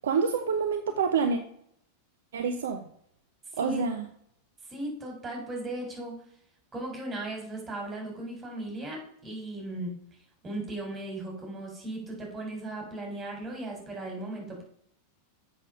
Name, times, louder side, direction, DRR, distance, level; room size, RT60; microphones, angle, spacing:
voice 1, 0.0-1.4 2.3-2.9 3.6-4.0, right 5 dB, 60° right, 7 dB, 0.8 m, -27 dB
voice 2, 4.7-6.2 6.7-9.9 10.4-14.6, right 2 dB, 20° right, 0 dB, 4.1 m, -37 dB
7.7 x 6.5 x 5.1 m, 0.67 s
figure-of-eight pair, 90°, 0 cm